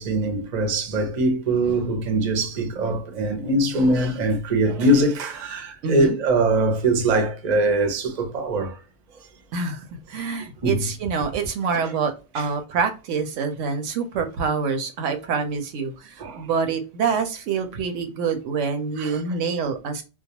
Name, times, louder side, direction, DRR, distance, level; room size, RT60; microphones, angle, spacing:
voice 1, 0.0-8.8 10.6-10.8 11.7-11.9 12.4-12.5 16.2-16.5 19.0-19.2, right 1 dB, 45° right, 0.6 m, -22 dB
voice 2, 5.8-6.2 9.5-20.0, right 5 dB, 80° right, 0.9 m, -26 dB
2.3 x 2.0 x 2.7 m
omnidirectional pair, 1.2 m